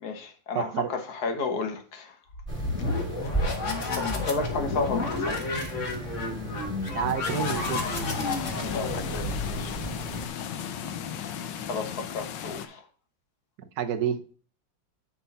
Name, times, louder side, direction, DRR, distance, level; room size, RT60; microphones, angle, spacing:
voice 1, 0.0-2.2 4.0-5.5 8.7-9.8 11.7-12.8, left 4 dB, 55° left, 1.6 m, -32 dB
voice 2, 0.5-0.9 2.8-3.0 6.9-7.9 13.8-14.4, right 8 dB, 60° right, 1.3 m, -29 dB
sound 1, 2.3-10.0, left 3 dB, 40° left, 1.6 m, -31 dB
sound 2, 2.5-10.3, right 2 dB, 5° right, 2.3 m, -36 dB
sound 3, 7.2-12.7, left 8 dB, 75° left, 1.4 m, -35 dB
10.0 x 3.8 x 4.1 m
omnidirectional pair, 2.1 m